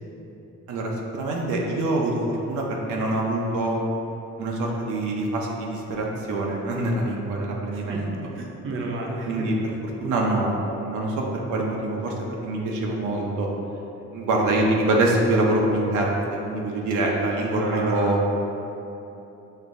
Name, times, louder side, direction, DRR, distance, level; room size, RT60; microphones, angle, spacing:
voice 1, 0.7-2.2 2.5-3.8 4.4-8.1 9.3-9.5 10.0-13.5 14.1-18.2, right 2 dB, 80° right, -2 dB, 0.7 m, -25 dB
voice 2, 7.7-9.5 17.6-18.2, right 2 dB, 40° right, -1 dB, 0.6 m, -32 dB
6.4 x 2.6 x 2.6 m, 3.0 s
cardioid pair, 90°, 30 cm